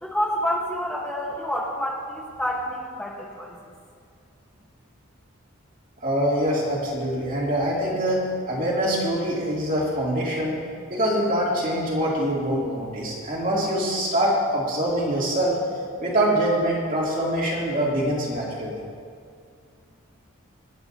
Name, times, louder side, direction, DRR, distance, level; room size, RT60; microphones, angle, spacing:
voice 1, 0.0-3.6, equal, 5° left, -4 dB, 1.0 m, -28 dB
voice 2, 6.0-10.6 10.9-15.6 16.0-18.8, right 1 dB, 40° right, -5 dB, 2.6 m, -24 dB
26.5 x 9.0 x 2.7 m, 2.2 s
head